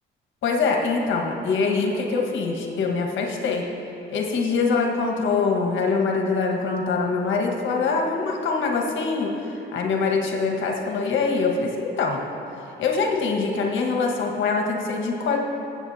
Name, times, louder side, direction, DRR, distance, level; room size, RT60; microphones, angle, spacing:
voice 1, 0.4-3.6 4.1-12.2 12.8-15.4, left 4 dB, 75° left, 0 dB, 1.6 m, -24 dB
22.5 x 8.2 x 2.9 m, 3.0 s
cardioid pair, 90°, 20 cm